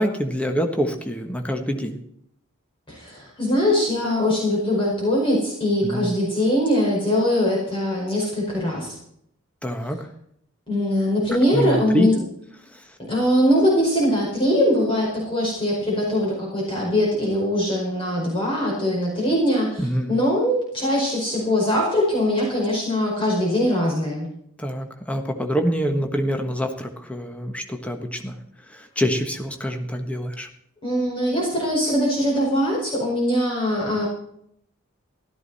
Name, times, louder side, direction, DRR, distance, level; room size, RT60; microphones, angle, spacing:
voice 1, 0.0-2.0 5.8-6.1 9.6-10.1 11.5-12.1 12.7-12.8 19.8-20.1 24.6-28.3 28.7-30.5, equal, 5° left, 4 dB, 1.3 m, -25 dB
voice 2, 2.9-9.0 10.7-12.1 13.0-24.3 30.8-34.1, left 1 dB, 25° left, -4 dB, 5.1 m, -22 dB
16.0 x 13.0 x 4.2 m, 0.70 s
head